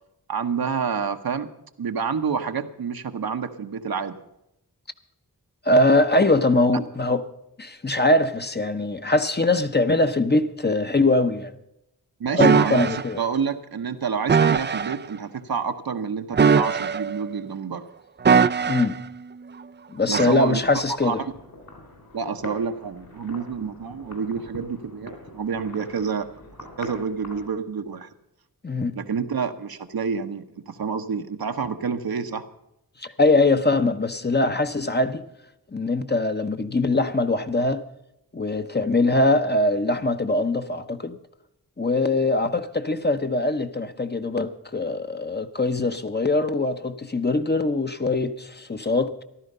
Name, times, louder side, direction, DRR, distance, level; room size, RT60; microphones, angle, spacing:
voice 1, 0.3-1.5 1.8-4.2 12.2-17.8 20.1-20.6 21.0-21.3 22.1-26.3 26.6-28.1 29.0-32.4, right 6 dB, 70° right, 1.0 m, -28 dB
voice 2, 5.7-7.2 7.6-11.5 12.3-13.2 18.7-19.0 19.9-21.2 28.6-29.0 33.0-35.2 35.7-37.9 38.3-41.2 41.8-49.2, left 2 dB, 25° left, 0.9 m, -22 dB
sound 1, 12.4-13.0 14.3-14.9 16.3-17.2 18.2-19.0 20.1-20.4, right 6 dB, 30° right, 0.4 m, -20 dB
sound 2, 20.5-27.5, left 1 dB, 65° left, 4.0 m, -43 dB
14.0 x 12.0 x 5.4 m
cardioid pair, 55°, 38 cm